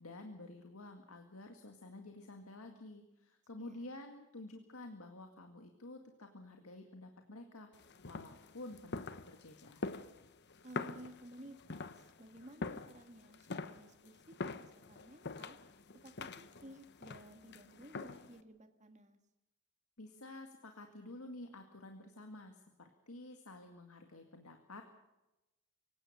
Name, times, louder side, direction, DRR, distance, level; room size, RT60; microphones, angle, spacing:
voice 1, 0.0-7.7 8.0-9.8 20.0-24.8, left 2 dB, 70° left, 4 dB, 2.0 m, -51 dB
voice 2, 3.6-3.9 10.6-15.6 16.0-19.2, right 1 dB, 30° right, 6 dB, 1.8 m, -55 dB
sound 1, 7.7-18.4, left 3 dB, 50° left, 1.0 m, -45 dB
25.0 x 17.0 x 6.8 m, 1.0 s
head